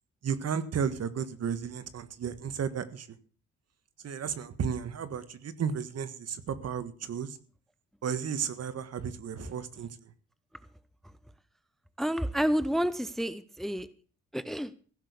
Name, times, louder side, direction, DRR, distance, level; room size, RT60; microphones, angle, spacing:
voice 1, 0.2-3.1 4.0-7.4 8.0-9.9, right 7 dB, 55° right, 13 dB, 1.7 m, -33 dB
voice 2, 12.0-13.9 14.3-14.7, equal, ahead, 15 dB, 0.7 m, -29 dB
16.0 x 6.3 x 8.4 m, 0.43 s
cardioid pair, 90°, 30 cm